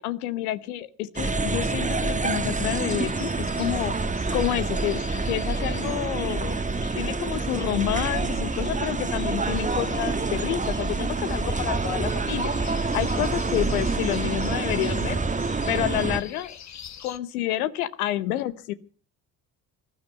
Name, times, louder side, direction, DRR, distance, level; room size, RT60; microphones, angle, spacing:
voice 1, 0.0-4.0 4.3-6.6 7.0-12.5 12.8-15.2 15.7-16.5 17.0-18.7, left 13 dB, 80° left, 15 dB, 0.9 m, -29 dB
sound 1, 1.2-16.2, right 3 dB, 15° right, 1.2 m, -27 dB
sound 2, 2.7-17.2, left 8 dB, 40° left, 1.3 m, -45 dB
20.0 x 12.5 x 5.4 m, 0.39 s
hypercardioid pair, 55°, 44 cm